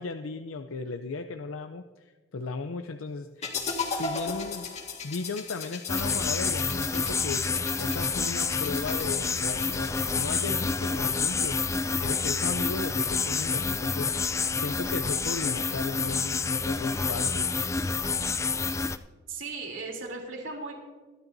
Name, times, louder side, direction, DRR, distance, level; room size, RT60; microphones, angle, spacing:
voice 1, 0.0-3.6 3.9-4.8 5.0-7.5 7.8-11.6 12.0-17.5, left 4 dB, 90° left, 8 dB, 0.6 m, -36 dB
sound 1, 3.4-11.5, left 4 dB, 35° left, 1.7 m, -37 dB
sound 2, 5.9-19.0, left 4 dB, 15° left, 0.4 m, -28 dB
voice 2, 19.3-20.7, right 3 dB, 70° right, 0 dB, 3.3 m, -36 dB
23.0 x 11.5 x 2.7 m, 1.4 s
head